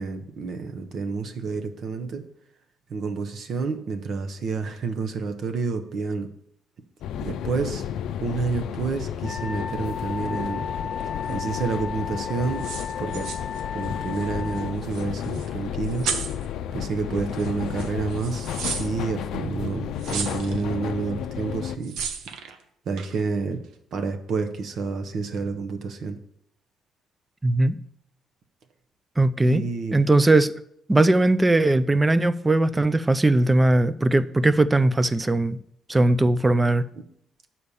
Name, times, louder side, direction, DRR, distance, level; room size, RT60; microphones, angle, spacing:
voice 1, 0.0-2.2 2.9-6.3 7.2-7.8 8.2-10.7 11.3-12.7 13.0-13.3 13.7-16.1 16.7-22.0 22.9-23.6 23.9-26.2 29.4-30.0 36.9-37.0, right 4 dB, 60° right, 0.9 m, -29 dB
sound 1, 7.0-21.8, left 9 dB, 80° left, 0.4 m, -32 dB
Wind instrument woodwind instrument, 9.2-14.8, left 6 dB, 25° left, 0.7 m, -34 dB
sound 2, 11.3-11.4 12.4-14.3 14.5-14.6 14.9-15.5 15.8-16.5 17.3-17.5 17.8-18.9 20.0-20.6 21.8-22.6 23.0-23.2, right 6 dB, 90° right, 0.9 m, -33 dB
voice 2, 27.4-27.8 29.2-29.6 29.9-30.5 30.9-35.6 35.9-36.9, right 2 dB, 15° right, 0.4 m, -19 dB
8.3 x 4.3 x 6.9 m
cardioid pair, 115°, 0 cm